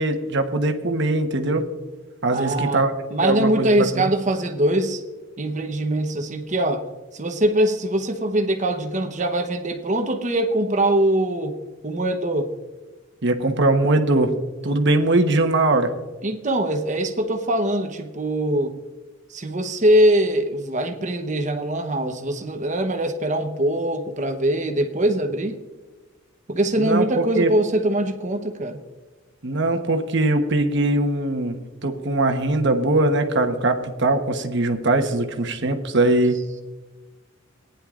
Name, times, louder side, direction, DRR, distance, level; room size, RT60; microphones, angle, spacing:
voice 1, 0.0-1.6 2.2-2.9 3.2-3.7 13.2-14.3 14.6-15.9 26.8-27.0 27.4-27.5 29.4-31.6 31.8-36.4, right 2 dB, 55° right, 6 dB, 1.1 m, -21 dB
voice 2, 2.3-2.8 3.1-5.0 5.4-6.8 7.1-11.6 11.8-12.5 16.2-18.7 19.3-25.6 26.5-28.8, right 1 dB, 35° right, 6 dB, 0.9 m, -22 dB
19.0 x 10.0 x 2.5 m, 1.2 s
head